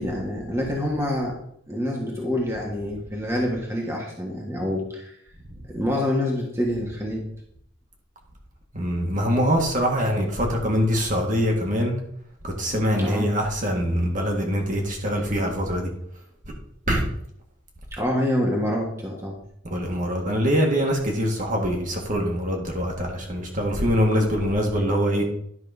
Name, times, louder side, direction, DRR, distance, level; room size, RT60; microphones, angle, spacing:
voice 1, 0.0-1.4 1.7-5.2 5.7-7.2 13.0-13.3 17.9-19.4, left 1 dB, 15° right, -1 dB, 1.5 m, -26 dB
voice 2, 8.7-11.9 12.4-15.9 16.9-17.0 19.6-25.3, equal, 40° right, 1 dB, 1.7 m, -23 dB
11.0 x 4.3 x 5.4 m, 0.70 s
head